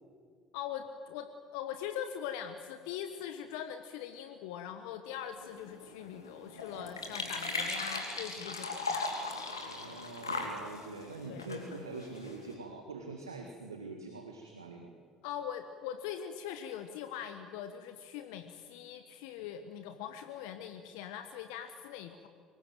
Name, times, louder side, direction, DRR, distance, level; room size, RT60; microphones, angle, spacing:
voice 1, 0.5-9.1 11.2-11.4 15.2-22.3, left 9 dB, 70° left, 8 dB, 1.3 m, -42 dB
sound 1, 5.4-12.5, left 3 dB, 90° left, 2.8 m, -39 dB
voice 2, 9.6-14.9, right 3 dB, 90° right, 4 dB, 1.8 m, -44 dB
24.0 x 20.5 x 9.1 m, 2.1 s
figure-of-eight pair, 55°, 2 cm